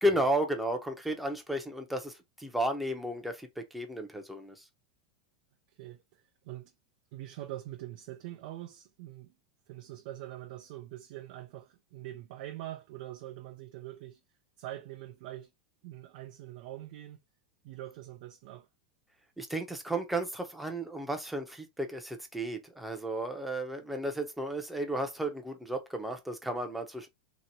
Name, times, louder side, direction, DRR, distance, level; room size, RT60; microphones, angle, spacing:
voice 1, 0.0-4.6 19.4-27.1, right 1 dB, ahead, 0.7 m, -33 dB
voice 2, 5.7-6.7 7.1-9.3 9.7-14.2 14.6-15.5 15.8-17.2 17.6-18.7, right 14 dB, 60° right, 0.4 m, -44 dB
2.9 x 2.8 x 2.7 m
supercardioid pair, 130°, 4 cm